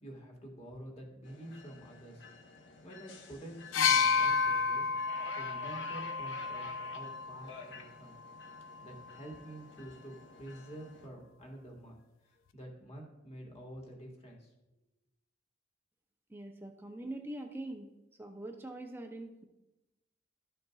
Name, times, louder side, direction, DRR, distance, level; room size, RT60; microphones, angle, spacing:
voice 1, 0.0-2.2 2.8-4.9 5.3-8.2 8.8-12.0 12.3-14.5, right 1 dB, 35° left, 0 dB, 1.7 m, -48 dB
sound 1, 1.2-11.1, left 3 dB, 65° left, 1.0 m, -51 dB
sound 2, 3.7-7.5 8.6-8.7, left 5 dB, 85° left, 0.4 m, -30 dB
voice 2, 16.3-17.9 18.2-19.4, right 1 dB, 10° right, 4 dB, 0.5 m, -43 dB
12.0 x 6.6 x 2.4 m, 0.96 s
head